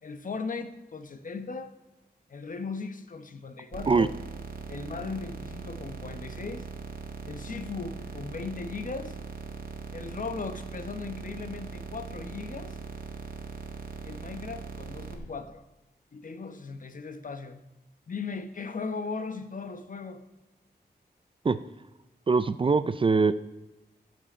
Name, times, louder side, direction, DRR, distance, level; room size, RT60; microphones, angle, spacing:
voice 1, 0.0-1.7 2.3-4.1 4.7-6.7 7.2-9.2 9.9-12.8 14.0-15.6 16.1-17.6 18.1-20.2, left 4 dB, 50° left, 9 dB, 0.9 m, -37 dB
sound 1, 3.7-15.2, right 5 dB, 55° right, 1.5 m, -40 dB
voice 2, 22.3-23.3, right 4 dB, 30° right, 14 dB, 0.4 m, -22 dB
15.5 x 7.6 x 4.3 m, 1.1 s
wide cardioid pair, 115°, 17 cm